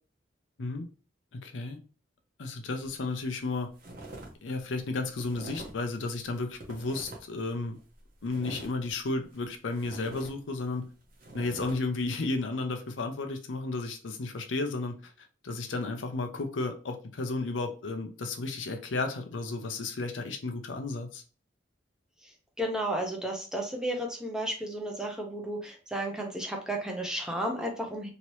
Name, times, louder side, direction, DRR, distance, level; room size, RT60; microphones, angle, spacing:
voice 1, 1.3-1.8 2.4-3.7 4.4-7.8 8.2-10.9 11.3-21.2, left 3 dB, 85° left, 0.6 m, -33 dB
sound 1, 2.8-3.1 3.4-4.3 4.6-5.9 6.2-7.4 7.8-9.4 9.7-11.7, right 2 dB, 50° right, 0.9 m, -45 dB
voice 2, 22.6-28.1, right 1 dB, 5° right, 0.7 m, -33 dB
2.9 x 2.8 x 3.0 m
head